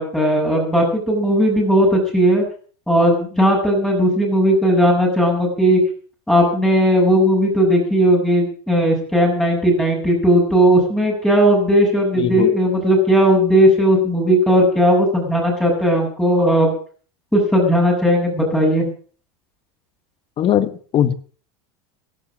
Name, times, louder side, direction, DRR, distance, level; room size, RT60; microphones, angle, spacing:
voice 1, 0.0-2.4 2.9-5.8 6.3-16.7 17.3-18.9, equal, 5° left, -2 dB, 7.6 m, -16 dB
voice 2, 12.2-12.5 20.4-21.1, left 10 dB, 40° left, 15 dB, 1.2 m, -19 dB
16.5 x 11.5 x 6.3 m, 0.43 s
supercardioid pair, 115°, 14 cm